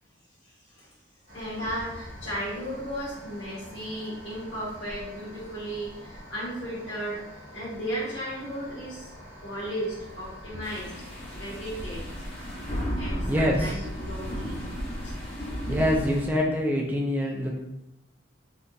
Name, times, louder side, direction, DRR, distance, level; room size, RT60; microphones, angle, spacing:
voice 1, 0.4-1.0 1.3-9.1 9.4-10.9 11.4-12.0 12.8-14.7 15.0-15.1, equal, 65° left, -12 dB, 1.3 m, -35 dB
sound 1, 1.3-16.2, equal, 45° right, 1.3 m, -43 dB
sound 2, 10.6-16.3, equal, 30° left, 0.8 m, -34 dB
voice 2, 13.3-13.9 15.7-17.6, equal, 10° right, -1 dB, 0.4 m, -25 dB
3.6 x 2.8 x 2.6 m, 0.86 s
head